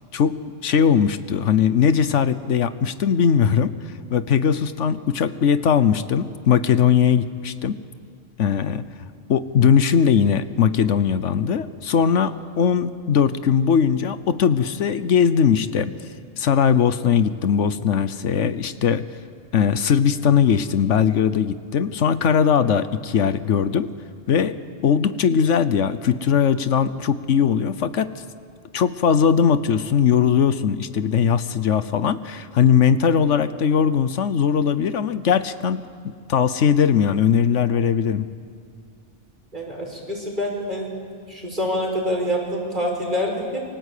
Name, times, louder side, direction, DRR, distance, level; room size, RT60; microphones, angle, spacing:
voice 1, 0.6-3.7 4.1-7.7 8.4-8.8 9.3-15.9 16.4-19.0 19.5-23.9 24.3-24.5 24.8-28.1 28.7-35.8 36.3-38.3, left 7 dB, 75° left, 13 dB, 1.2 m, -19 dB
voice 2, 39.5-40.9 41.3-43.6, equal, 40° right, -1 dB, 6.2 m, -26 dB
28.0 x 24.0 x 8.4 m, 2.3 s
omnidirectional pair, 1.2 m